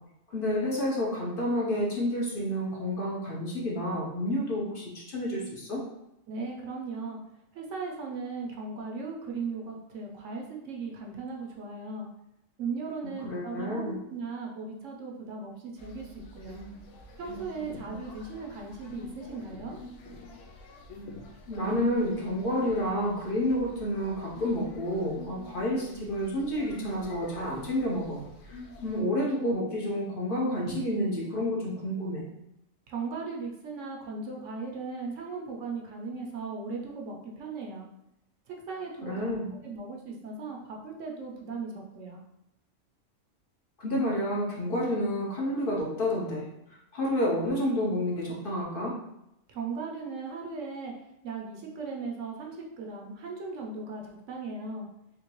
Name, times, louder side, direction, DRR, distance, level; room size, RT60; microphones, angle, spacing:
voice 1, 0.3-5.8 13.2-14.0 21.5-28.2 28.5-32.2 39.0-39.5 43.8-46.4 46.9-48.9, left 1 dB, 50° left, -4 dB, 0.9 m, -29 dB
voice 2, 6.3-7.2 7.5-12.1 12.6-16.6 17.2-19.8 32.9-37.8 38.5-39.4 39.6-42.2 49.5-50.9 51.2-54.9, right 4 dB, 70° right, -1 dB, 1.0 m, -37 dB
sound 1, 15.8-29.0, left 2 dB, 75° left, 0.9 m, -46 dB
3.7 x 2.8 x 3.0 m, 0.84 s
omnidirectional pair, 1.3 m